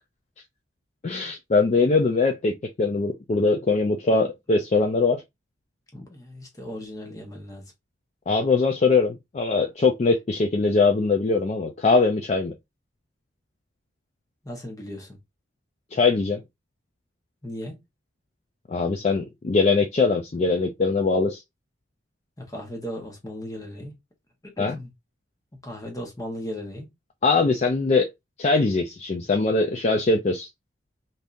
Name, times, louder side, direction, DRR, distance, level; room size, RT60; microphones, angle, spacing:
voice 1, 1.0-5.2 8.3-12.5 15.9-16.4 18.7-21.4 24.6-24.7 27.2-28.1 28.4-30.5, left 3 dB, 35° left, 0.4 m, -22 dB
voice 2, 5.9-7.7 14.4-15.2 17.4-17.8 22.4-23.9 24.4-24.9 25.6-26.9, equal, 20° left, 1.0 m, -36 dB
3.5 x 2.7 x 2.5 m
head